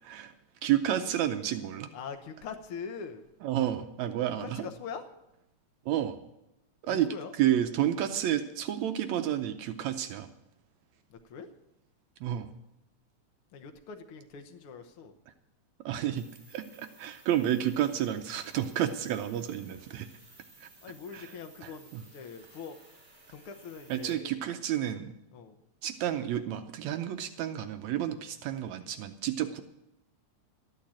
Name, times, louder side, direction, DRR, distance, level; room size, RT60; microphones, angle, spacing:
voice 1, 0.6-1.9 3.4-4.5 5.9-6.2 6.8-7.1 7.4-10.3 12.2-12.5 15.9-20.1 20.6-20.7 21.1-21.3 21.9-22.0 23.9-25.1 25.8-29.6, right 11 dB, 80° right, 8 dB, 1.9 m, -30 dB
voice 2, 1.9-3.2 4.4-5.0 6.9-7.3 11.1-11.5 13.5-15.1 20.8-22.8 23.3-24.3 25.3-25.6, left 6 dB, 65° left, 7 dB, 1.5 m, -42 dB
sound 1, 16.1-24.1, right 2 dB, 45° right, 5.5 m, -57 dB
13.0 x 9.0 x 8.6 m, 0.88 s
omnidirectional pair, 3.3 m